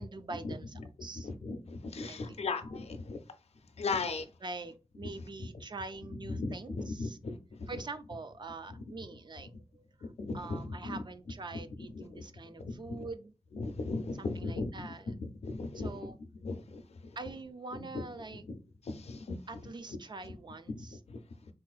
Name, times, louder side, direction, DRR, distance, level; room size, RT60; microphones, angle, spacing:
voice 1, 0.0-1.3 2.1-2.4 4.4-7.2 7.7-9.9 10.3-13.3 14.2-15.1 15.7-16.2 17.2-18.4 19.5-21.0, right 3 dB, 45° right, 0.3 m, -44 dB
voice 2, 1.2-3.2 3.8-4.2 5.4-5.5 6.3-7.4 10.2-11.0 12.0-12.2 12.6-13.0 13.6-14.9 15.2-15.9 16.4-16.6 17.9-18.0 18.5-18.6 18.9-19.4 20.7-21.2, left 3 dB, 75° left, 0.4 m, -37 dB
3.6 x 2.5 x 2.3 m
wide cardioid pair, 90°, 11 cm